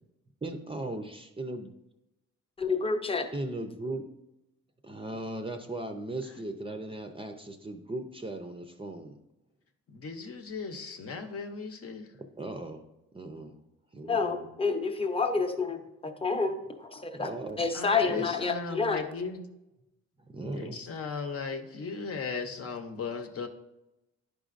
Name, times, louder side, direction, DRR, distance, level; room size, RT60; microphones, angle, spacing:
voice 1, 0.4-1.7 3.3-4.1 4.8-9.2 12.4-12.9 13.1-13.6 13.9-14.5 17.1-17.7 18.0-18.3 20.2-20.8, right 2 dB, 20° right, 5 dB, 0.5 m, -38 dB
voice 2, 2.6-3.3 14.0-17.3 17.6-19.0, left 4 dB, 20° left, 6 dB, 0.8 m, -29 dB
voice 3, 9.9-12.1 17.7-19.4 20.6-23.5, left 5 dB, 50° left, 5 dB, 0.9 m, -37 dB
10.5 x 5.1 x 2.5 m, 0.91 s
cardioid pair, 90°, 30 cm